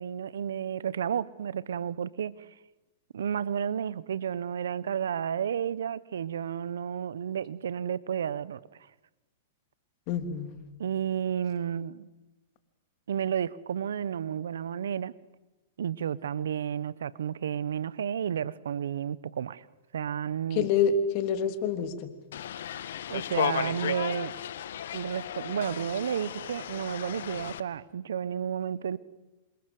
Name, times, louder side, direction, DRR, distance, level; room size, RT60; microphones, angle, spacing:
voice 1, 0.0-2.5 3.1-8.6 10.8-12.1 13.1-15.1 15.8-19.6 19.9-20.7 23.1-24.3 24.9-29.0, right 8 dB, 80° right, 1.0 m, -32 dB
voice 2, 10.1-10.5 20.5-22.1, left 6 dB, 45° left, 3.2 m, -27 dB
sound 1, 22.3-27.6, left 10 dB, 70° left, 1.5 m, -34 dB
28.0 x 25.5 x 7.8 m
hypercardioid pair, 120°, 0 cm